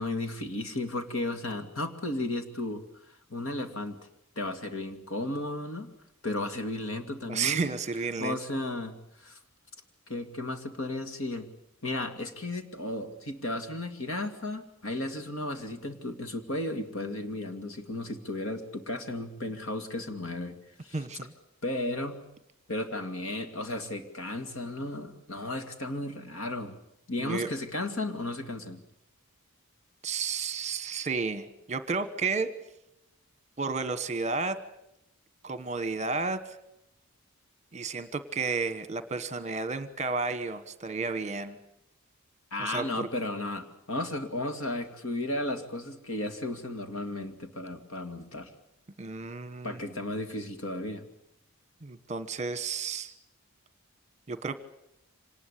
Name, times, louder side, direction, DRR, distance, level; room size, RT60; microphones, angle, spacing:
voice 1, 0.0-2.8 3.3-4.0 4.4-5.9 6.2-7.7 8.2-9.4 10.1-11.5 11.8-20.6 20.8-21.1 21.6-22.2 22.7-26.8 27.1-28.8 42.5-48.5 49.6-51.0, left 2 dB, 65° left, 7 dB, 2.4 m, -34 dB
voice 2, 7.2-8.4 20.9-21.3 27.2-27.5 30.0-32.5 33.6-34.6 35.4-36.6 37.7-41.6 42.6-43.1 49.0-49.8 51.8-53.1 54.3-54.6, right 4 dB, 30° right, 12 dB, 1.2 m, -32 dB
25.5 x 19.5 x 8.3 m, 0.83 s
head